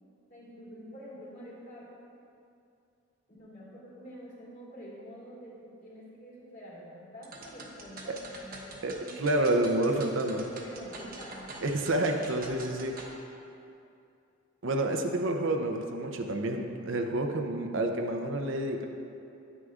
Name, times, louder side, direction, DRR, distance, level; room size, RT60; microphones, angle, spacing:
voice 1, 0.3-2.0 3.3-9.3 9.8-11.6, equal, 45° left, -6 dB, 2.1 m, -46 dB
sound 1, 7.2-13.1, right 2 dB, 45° right, 1.0 m, -46 dB
voice 2, 9.2-10.4 11.6-13.0 14.6-18.9, right 1 dB, 65° right, 3 dB, 0.6 m, -29 dB
9.7 x 9.1 x 2.4 m, 2.6 s
head